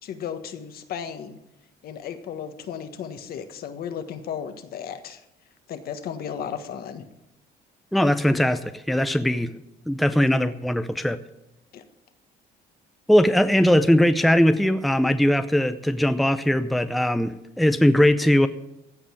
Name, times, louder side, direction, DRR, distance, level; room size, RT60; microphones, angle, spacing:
voice 1, 0.0-1.4 1.8-5.2 5.7-7.0 11.7-11.8, left 8 dB, 65° left, 9 dB, 1.5 m, -34 dB
voice 2, 7.9-9.5 9.9-11.2 13.1-18.5, equal, ahead, 10 dB, 0.6 m, -20 dB
15.5 x 5.4 x 9.3 m, 0.87 s
cardioid pair, 110°, 17 cm